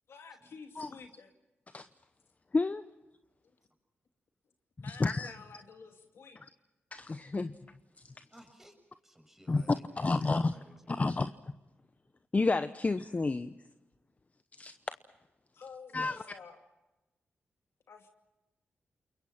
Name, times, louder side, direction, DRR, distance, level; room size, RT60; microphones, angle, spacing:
voice 1, 0.1-1.3 4.8-6.4 15.5-16.6 17.9-18.1, left 5 dB, 70° left, 5 dB, 2.5 m, -50 dB
voice 2, 4.9-5.3 6.9-7.5 8.0-8.1 9.5-10.5 10.9-11.3 12.3-13.5 14.6-14.7 15.9-16.2, left 3 dB, 35° left, 12 dB, 0.9 m, -30 dB
voice 3, 8.3-8.7 9.0-10.9, equal, 5° right, 4 dB, 6.9 m, -57 dB
29.0 x 22.0 x 5.8 m, 1.0 s
supercardioid pair, 50°, 4 cm